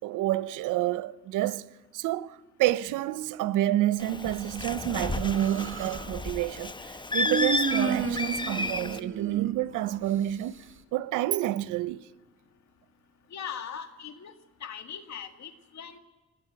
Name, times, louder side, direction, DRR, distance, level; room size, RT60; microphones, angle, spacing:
voice 1, 0.0-1.7 1.9-10.6 10.9-12.1, right 14 dB, 90° right, 0.7 m, -29 dB
Bird, 4.0-9.0, left 2 dB, 15° left, 0.9 m, -32 dB
Human voice, 5.1-6.1 7.2-10.0, right 5 dB, 40° right, 1.6 m, -32 dB
voice 2, 13.3-14.3 14.6-16.0, left 8 dB, 65° left, 2.0 m, -40 dB
24.5 x 20.0 x 9.0 m
cardioid pair, 90°, 30 cm